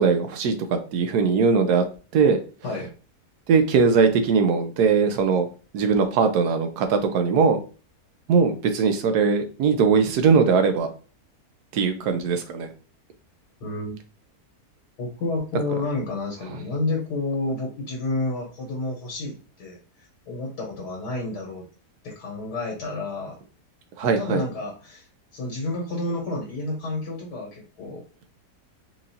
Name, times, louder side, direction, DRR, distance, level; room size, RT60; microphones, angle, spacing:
voice 1, 0.0-1.8 2.1-2.4 3.5-5.5 5.7-7.6 8.3-10.9 11.7-12.7 24.0-24.4, right 5 dB, 80° right, 7 dB, 1.2 m, -20 dB
voice 2, 13.6-14.0 15.0-21.6 22.0-23.4 24.2-28.0, left 2 dB, 80° left, -1 dB, 1.7 m, -30 dB
4.6 x 2.5 x 2.7 m, 0.36 s
omnidirectional pair, 1.7 m